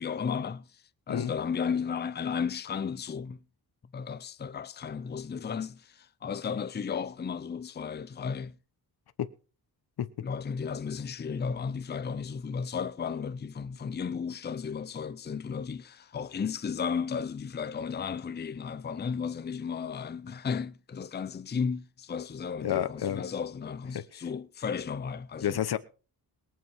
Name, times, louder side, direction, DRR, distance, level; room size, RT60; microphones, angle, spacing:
voice 1, 0.0-3.4 3.9-8.6 10.2-25.6, left 6 dB, 25° left, 0.5 m, -34 dB
voice 2, 22.6-23.2 25.4-25.8, left 10 dB, 75° left, 1.0 m, -29 dB
22.0 x 7.9 x 4.6 m
wide cardioid pair, 165°, 38 cm